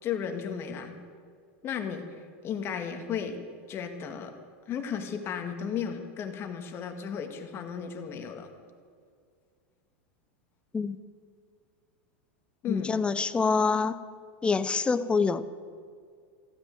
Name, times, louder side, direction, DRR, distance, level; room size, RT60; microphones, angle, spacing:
voice 1, 0.0-1.0 1.6-2.1 2.4-3.4 3.7-4.3 4.7-8.5 12.6-13.0, left 7 dB, 35° left, 5 dB, 1.9 m, -34 dB
voice 2, 12.7-14.0 14.4-15.5, left 4 dB, 15° left, 14 dB, 0.7 m, -26 dB
15.5 x 9.6 x 9.3 m, 2.1 s
supercardioid pair, 130°, 7 cm